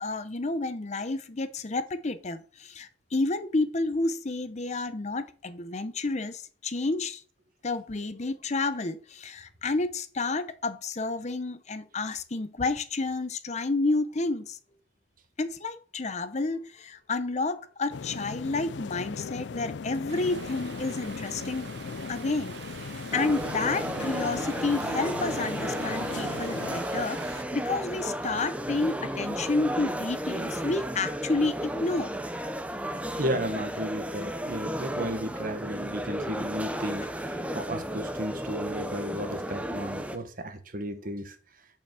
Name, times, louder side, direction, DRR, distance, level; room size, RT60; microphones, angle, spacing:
voice 1, 0.0-7.2 7.6-14.6 15.4-21.7 22.1-32.2, left 3 dB, 40° left, 0.7 m, -30 dB
sound 1, 17.9-26.8, left 5 dB, 75° left, 0.4 m, -38 dB
Stream, 20.1-27.4, right 6 dB, 65° right, 0.6 m, -45 dB
sound 2, 23.1-40.2, equal, 5° right, 0.8 m, -33 dB
voice 2, 33.2-41.4, equal, 50° right, 1.3 m, -34 dB
7.1 x 5.8 x 7.5 m
head